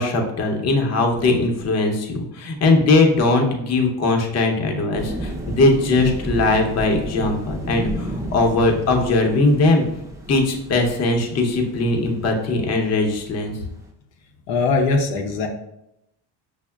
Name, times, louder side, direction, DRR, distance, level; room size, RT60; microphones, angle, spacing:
voice 1, 0.0-9.8 10.3-13.5, left 2 dB, 35° left, 2 dB, 0.7 m, -20 dB
sound 1, 4.9-13.8, equal, 5° right, 0.5 m, -33 dB
voice 2, 14.5-15.5, left 3 dB, 75° left, 2 dB, 0.6 m, -20 dB
6.0 x 2.0 x 2.3 m, 0.83 s
cardioid pair, 100°, 45 cm